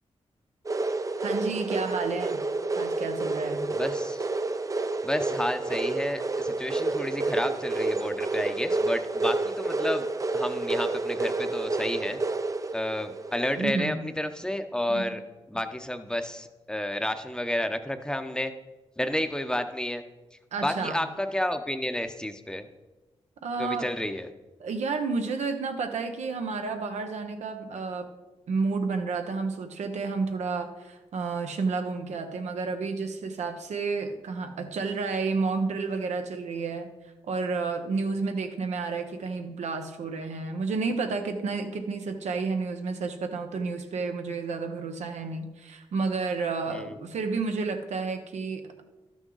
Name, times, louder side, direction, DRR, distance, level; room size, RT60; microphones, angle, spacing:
sound 1, 0.7-13.8, right 3 dB, 30° right, 0.5 m, -29 dB
voice 1, 1.2-2.4 2.8-3.7 13.6-14.1 14.9-15.1 20.5-21.0 23.4-23.9 24.6-28.1 28.5-36.9 37.2-48.8, right 4 dB, 90° right, 5 dB, 0.9 m, -31 dB
voice 2, 3.7-4.3 5.0-10.1 10.3-12.2 12.7-15.2 15.5-18.5 19.0-20.0 20.6-22.7 23.6-24.3 46.7-47.0, left 1 dB, 5° left, 8 dB, 0.7 m, -31 dB
12.0 x 6.2 x 3.9 m, 1.1 s
cardioid pair, 70°, 12 cm